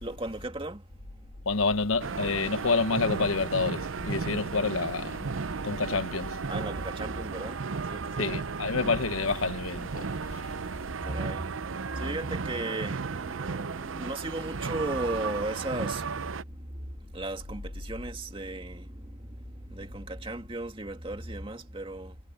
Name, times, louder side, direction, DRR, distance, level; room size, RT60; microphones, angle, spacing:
voice 1, 0.0-0.9 1.1-1.3 6.5-8.3 11.0-22.2, right 2 dB, 25° right, 2.2 m, -36 dB
voice 2, 1.4-6.4 8.2-10.5, left 4 dB, 85° left, 1.1 m, -28 dB
sound 1, 2.0-16.4, right 5 dB, 75° right, 0.6 m, -35 dB
head